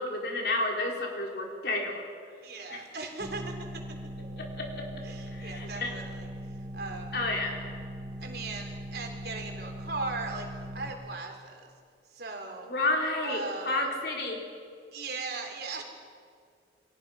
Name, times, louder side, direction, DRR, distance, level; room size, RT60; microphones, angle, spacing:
voice 1, 0.0-2.0 2.7-2.8 4.4-4.8 5.3-5.9 7.1-7.6 12.6-14.4, left 2 dB, 60° left, 0 dB, 4.3 m, -31 dB
voice 2, 2.4-3.8 5.0-7.2 8.2-11.7 12.1-12.7 13.2-13.9 14.9-15.8, right 3 dB, 60° right, 2 dB, 4.1 m, -38 dB
sound 1, 3.2-10.9, equal, 10° right, 3.3 m, -40 dB
29.5 x 23.5 x 5.8 m, 2.1 s
head